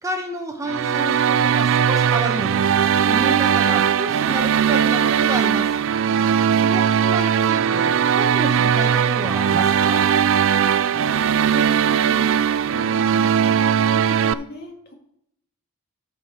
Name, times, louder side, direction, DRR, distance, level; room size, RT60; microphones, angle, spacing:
voice 1, 0.0-2.7 3.0-5.7 6.5-10.0, right 1 dB, 15° right, 4 dB, 1.0 m, -30 dB
sound 1, 0.7-14.3, right 8 dB, 60° right, 0.4 m, -19 dB
voice 2, 10.7-12.4 12.7-14.9, left 1 dB, 50° left, 2 dB, 2.0 m, -38 dB
13.5 x 5.0 x 4.3 m, 0.72 s
head